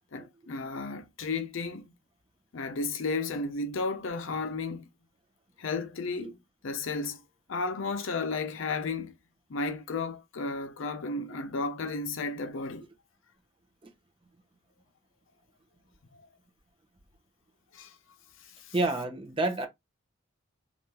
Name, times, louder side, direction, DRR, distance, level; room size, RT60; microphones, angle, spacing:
voice 1, 0.1-1.9 2.5-4.9 5.6-6.4 6.6-7.2 7.5-9.1 9.5-12.9 16.1-16.2 17.7-18.0 18.6-18.7, left 3 dB, 65° left, 0.5 m, -33 dB
voice 2, 18.7-19.7, right 2 dB, 25° right, 0.7 m, -28 dB
3.5 x 2.4 x 2.8 m
head